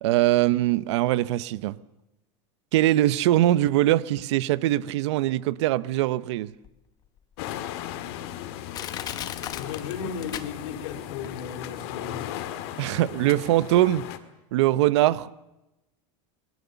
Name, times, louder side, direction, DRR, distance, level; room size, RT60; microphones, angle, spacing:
voice 1, 0.0-1.8 2.7-6.5 12.8-14.0 14.5-15.4, right 14 dB, 60° right, 0.8 m, -22 dB
Crushing, 6.6-6.7 7.4-7.5 8.2-8.3 8.7-10.9 11.2-11.3, left 10 dB, 25° left, 1.1 m, -36 dB
sound 1, 7.4-14.2, left 12 dB, 50° left, 2.1 m, -36 dB
voice 2, 9.5-12.2, left 6 dB, 65° left, 4.2 m, -35 dB
27.0 x 21.5 x 7.0 m
supercardioid pair, 175°, 17 cm